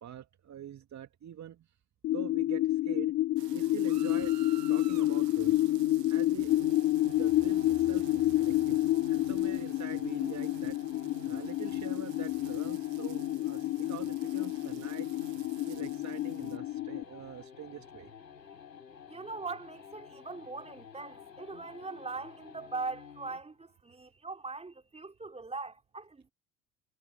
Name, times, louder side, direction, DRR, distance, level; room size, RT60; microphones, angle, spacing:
voice 1, 0.0-1.7 2.1-3.2 3.5-4.4 4.7-5.7 6.1-6.7 7.0-8.8 9.1-10.8 11.2-15.1 15.7-18.1, right 10 dB, 35° right, 2.4 m, -45 dB
sound 1, 2.0-17.0, left 15 dB, 25° left, 0.4 m, -29 dB
sound 2, 3.4-16.6, right 12 dB, 75° right, 1.1 m, -50 dB
sound 3, 6.5-23.5, left 8 dB, 85° left, 3.0 m, -51 dB
voice 2, 19.1-26.3, right 3 dB, 10° right, 3.4 m, -41 dB
figure-of-eight pair, 65°, 49 cm